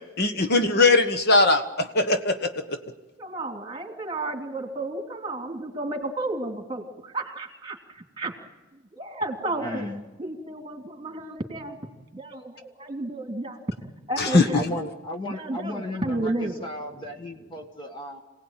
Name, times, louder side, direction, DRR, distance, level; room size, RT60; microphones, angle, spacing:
voice 1, 0.2-2.8 14.2-14.4, left 2 dB, 55° left, 8 dB, 1.3 m, -20 dB
voice 2, 3.2-8.3 8.7-9.9 10.2-11.8 12.1-13.8 14.1-14.8 15.2-16.7 16.9-17.0, right 2 dB, 25° right, 4 dB, 2.9 m, -32 dB
voice 3, 9.6-10.0 14.3-18.2, left 1 dB, 25° left, 3 dB, 1.5 m, -34 dB
27.0 x 18.0 x 9.1 m, 1.2 s
head